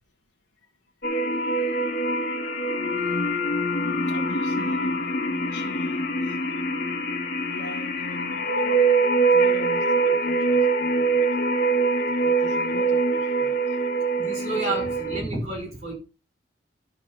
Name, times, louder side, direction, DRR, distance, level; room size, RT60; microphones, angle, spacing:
sound 1, 1.0-15.2, right 2 dB, 55° left, 1.6 m, -24 dB
voice 1, 4.1-6.4 7.4-8.7 9.2-11.3 12.2-13.8 14.2-14.8, left 1 dB, 90° left, 1.7 m, -41 dB
voice 2, 14.2-15.9, right 2 dB, 35° right, 5.5 m, -30 dB
12.0 x 4.2 x 5.6 m
head